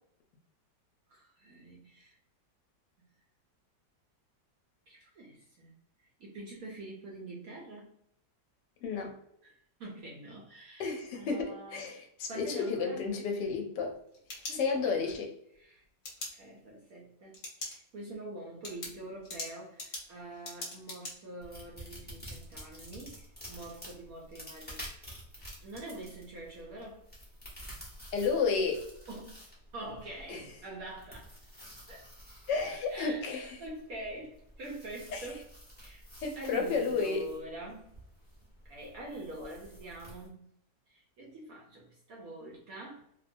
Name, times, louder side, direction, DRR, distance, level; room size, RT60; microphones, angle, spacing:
voice 1, 1.1-2.2 3.0-3.1 4.9-5.7 6.2-7.9 9.4-11.9 12.3-13.0 14.5-15.2 15.6-15.8 16.3-17.4 17.6-25.0 25.6-27.0 29.1-31.3 31.9-32.1 32.9-35.4 35.8-36.0 36.4-37.9 38.7-40.5 40.9-43.0, right 1 dB, 70° right, -2 dB, 0.9 m, -45 dB
voice 2, 8.8-9.2 10.8-14.0 14.5-15.3 28.1-28.8 30.3-30.4 32.5-33.6 35.1-35.3 36.2-37.3, left 5 dB, 75° left, 3 dB, 1.2 m, -32 dB
sound 1, 13.9-15.1 16.0-16.3 17.3-17.8 18.1-18.2 18.6-21.1, left 2 dB, 50° left, 1.0 m, -41 dB
sound 2, 21.4-40.3, equal, 10° left, 0.4 m, -50 dB
2.9 x 2.1 x 2.5 m, 0.73 s
omnidirectional pair, 1.9 m